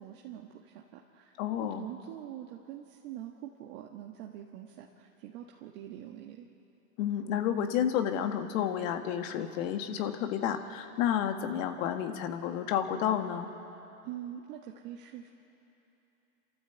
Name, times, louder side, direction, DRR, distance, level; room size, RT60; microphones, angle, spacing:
voice 1, 0.0-6.5 14.0-15.3, right 11 dB, 60° right, 0 dB, 1.6 m, -44 dB
voice 2, 1.4-1.9 7.0-13.5, left 9 dB, 60° left, 6 dB, 1.8 m, -31 dB
27.0 x 13.5 x 8.1 m, 2.9 s
hypercardioid pair, 110°, 44 cm